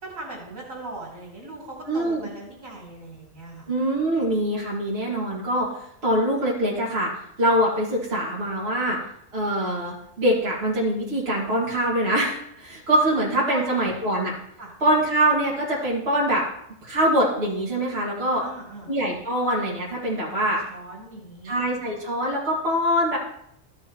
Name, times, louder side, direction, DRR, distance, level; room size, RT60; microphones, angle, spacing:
voice 1, 0.0-3.7 13.1-13.2 13.5-13.9 14.6-14.7 18.4-18.9 20.4-21.5, right 2 dB, 75° right, -4 dB, 3.1 m, -39 dB
voice 2, 1.9-2.2 3.7-7.1 7.4-9.0 9.3-14.3 14.8-16.5 16.8-18.4 18.9-20.6 21.4-23.2, right 1 dB, 50° right, -6 dB, 2.4 m, -23 dB
13.5 x 6.4 x 3.0 m, 0.73 s
omnidirectional pair, 1.4 m